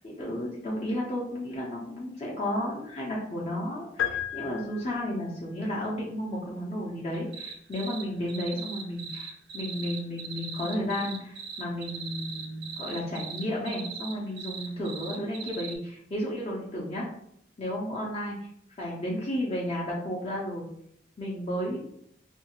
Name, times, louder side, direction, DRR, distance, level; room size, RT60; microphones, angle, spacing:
voice 1, 0.0-17.1 17.6-18.4 18.8-20.7 21.2-21.9, left 1 dB, 35° left, -5 dB, 0.5 m, -33 dB
sound 1, 4.0-5.3, left 10 dB, 85° left, 0.4 m, -33 dB
sound 2, 7.1-8.0 8.3-15.8, right 6 dB, 65° right, 0.4 m, -39 dB
2.5 x 2.3 x 2.9 m, 0.70 s
head